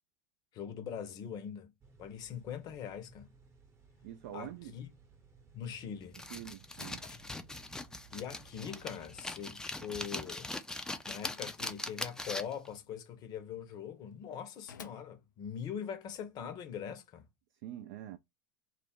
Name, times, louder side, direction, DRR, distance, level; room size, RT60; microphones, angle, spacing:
voice 1, 0.5-1.7 2.0-3.3 4.3-4.9 5.5-6.2 8.1-10.5 11.1-17.3, left 8 dB, 45° left, 0.7 m, -42 dB
sound 1, 1.8-9.3, right 5 dB, 30° right, 0.8 m, -60 dB
voice 2, 4.0-4.8 6.3-7.0 17.6-18.2, right 12 dB, 65° right, 0.4 m, -45 dB
sound 2, 6.1-12.7, left 2 dB, 5° left, 0.4 m, -41 dB
Drawer open or close, 6.7-16.1, left 7 dB, 90° left, 0.4 m, -60 dB
2.4 x 2.0 x 3.4 m
hypercardioid pair, 90°, 10 cm